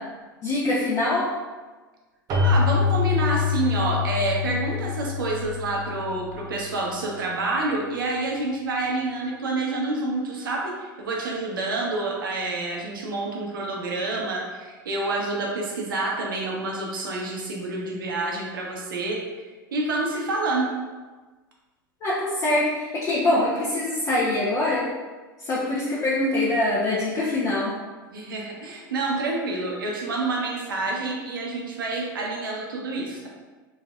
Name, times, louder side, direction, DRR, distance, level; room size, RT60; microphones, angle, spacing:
voice 1, 0.4-1.3 22.0-24.9 25.4-27.7, left 2 dB, 30° left, -7 dB, 0.8 m, -24 dB
Keyboard (musical), 2.3-6.8, left 6 dB, 35° right, 0.7 m, -25 dB
voice 2, 2.4-19.2 19.7-20.7 28.1-33.3, right 2 dB, 70° right, -1 dB, 0.8 m, -28 dB
4.2 x 2.7 x 2.4 m, 1.3 s
figure-of-eight pair, 85°, 12 cm